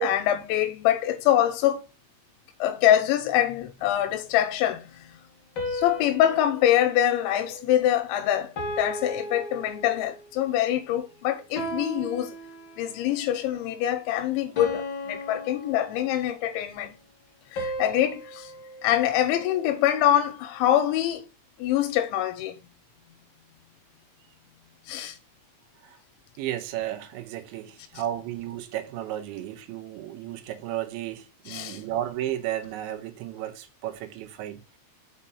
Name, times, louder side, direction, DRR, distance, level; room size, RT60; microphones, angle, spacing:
voice 1, 0.0-1.8 2.6-5.2 5.7-12.3 12.8-16.9 17.5-18.5 18.8-21.3 21.6-22.7 24.9-25.2 31.5-31.8, left 12 dB, 90° left, 3.3 m, -24 dB
sound 1, 5.6-8.0 8.6-10.3 11.6-13.1 14.6-16.4 17.6-19.9, equal, 65° left, 1.2 m, -36 dB
voice 2, 26.4-34.8, right 12 dB, 85° right, 3.3 m, -33 dB
6.5 x 5.3 x 5.5 m
omnidirectional pair, 5.2 m